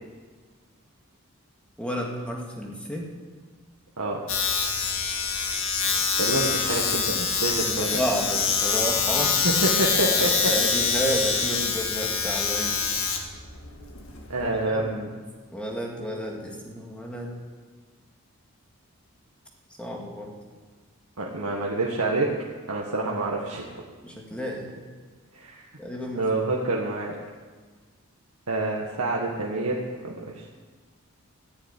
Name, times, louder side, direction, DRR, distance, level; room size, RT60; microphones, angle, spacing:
voice 1, 1.8-3.1 7.7-9.6 10.2-12.8 14.4-14.9 15.5-17.3 19.8-20.3 24.0-24.7 25.8-26.4, equal, 5° left, -1 dB, 2.1 m, -31 dB
voice 2, 4.0-4.3 6.2-8.0 9.4-10.5 14.3-15.1 21.2-22.4 22.7-23.7 25.3-25.6 26.1-27.2 28.5-30.4, right 2 dB, 85° right, -2 dB, 1.5 m, -27 dB
Domestic sounds home sounds, 4.3-14.7, left 5 dB, 65° left, 1.6 m, -25 dB
15.0 x 6.8 x 9.8 m, 1.5 s
head